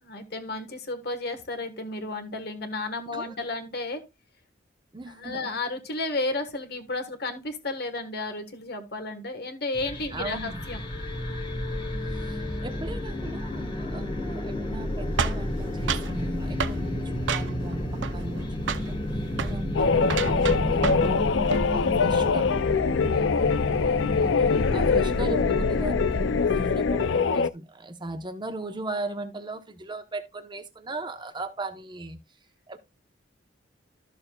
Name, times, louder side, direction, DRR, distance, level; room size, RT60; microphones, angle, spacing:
voice 1, 0.0-4.0 5.1-10.8 23.1-23.4, left 2 dB, 55° left, 1.4 m, -33 dB
voice 2, 4.9-5.6 10.1-10.6 12.0-19.0 19.4-22.5 23.9-32.2 32.7-32.8, right 2 dB, 25° right, 0.9 m, -37 dB
sound 1, 9.7-27.2, left 1 dB, 25° left, 1.4 m, -31 dB
sound 2, 15.2-16.1 16.6-16.8 17.3-17.7 18.0-18.4 18.7-18.9 19.3-19.6 20.0-21.1 21.4-21.7, right 6 dB, 70° right, 0.6 m, -30 dB
sound 3, 19.7-27.5, left 5 dB, 70° left, 0.4 m, -24 dB
12.5 x 6.8 x 2.3 m
head